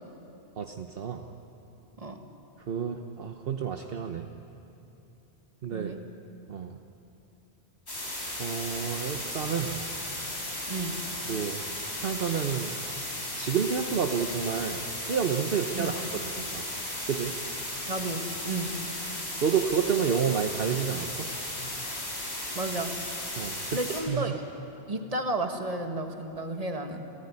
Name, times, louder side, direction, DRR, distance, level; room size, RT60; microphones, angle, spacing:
voice 1, 0.6-1.2 2.7-4.3 5.6-6.0 6.5-6.8 8.4-9.8 11.3-11.6 11.9-12.8 13.3-16.6 17.1-17.3 19.4-21.3 23.4-23.8 24.1-24.3, right 7 dB, 60° right, 5 dB, 1.1 m, -30 dB
sound 1, 7.9-24.0, left 1 dB, 75° left, 5.3 m, -35 dB
voice 2, 10.7-11.0 15.7-15.9 17.9-18.8 22.5-22.9 23.7-24.4 24.9-27.1, right 2 dB, 35° right, 5 dB, 1.8 m, -32 dB
29.0 x 15.0 x 9.8 m, 2.9 s
omnidirectional pair, 1.1 m